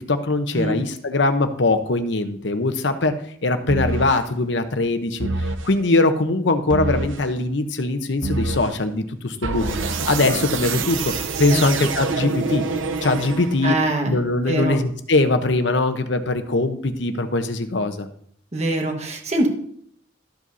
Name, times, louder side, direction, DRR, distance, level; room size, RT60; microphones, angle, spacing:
voice 1, 0.1-3.1 3.4-5.3 5.6-9.8 10.1-11.1 11.4-12.6 13.0-13.8 14.0-18.1, left 2 dB, 70° left, 9 dB, 0.9 m, -21 dB
sound 1, 3.7-4.2 5.2-5.7 6.7-7.3 8.2-8.8 9.4-13.8, right 3 dB, 90° right, 0.8 m, -26 dB
voice 2, 11.5-11.9 13.6-14.2 14.4-14.8 18.5-19.5, right 1 dB, 35° right, 2 dB, 1.5 m, -23 dB
13.0 x 7.6 x 2.7 m, 0.64 s
head